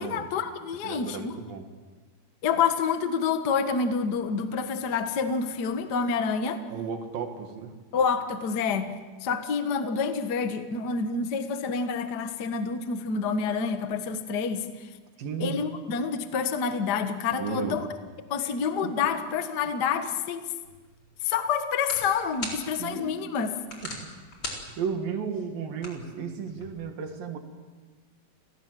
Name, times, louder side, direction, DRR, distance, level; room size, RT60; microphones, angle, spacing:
voice 1, 0.0-1.3 2.4-6.6 7.9-8.9 9.2-14.9 15.4-17.9 18.3-20.4 21.2-23.5, left 5 dB, 65° left, 8 dB, 1.0 m, -28 dB
voice 2, 0.8-1.7 6.7-7.8 15.2-15.6 17.3-17.8 18.4-18.6 18.8-18.9 22.8-23.2 23.8-24.1 24.8-27.4, right 6 dB, 70° right, 5 dB, 3.7 m, -34 dB
sound 1, 20.6-26.7, left 2 dB, 30° left, 4.6 m, -42 dB
30.0 x 18.0 x 7.6 m, 1.3 s
omnidirectional pair, 4.4 m